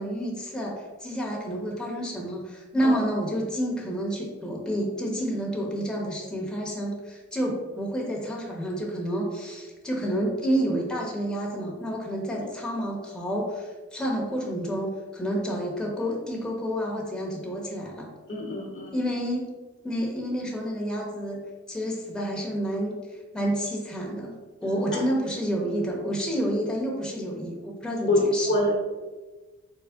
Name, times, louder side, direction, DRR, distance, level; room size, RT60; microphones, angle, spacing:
voice 1, 0.0-18.1 18.9-19.5 19.8-21.4 21.7-22.9 23.3-24.3 24.6-28.6, equal, ahead, -2 dB, 0.9 m, -29 dB
voice 2, 18.3-18.9 24.9-25.0 28.1-28.8, left 1 dB, 40° left, -1 dB, 1.0 m, -25 dB
3.7 x 2.1 x 3.5 m, 1.2 s
cardioid pair, 45°, 30 cm